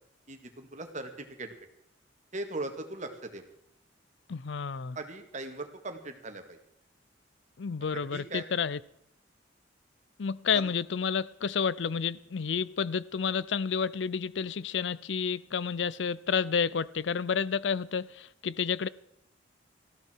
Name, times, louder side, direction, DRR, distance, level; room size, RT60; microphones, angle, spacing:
voice 1, 0.3-1.5 2.3-3.4 5.0-6.6 8.1-8.5 10.5-10.7, right 2 dB, 40° right, 6 dB, 2.1 m, -39 dB
voice 2, 4.3-5.0 7.6-8.8 10.2-18.9, left 6 dB, 70° left, 20 dB, 0.5 m, -30 dB
19.0 x 14.5 x 4.6 m, 0.75 s
head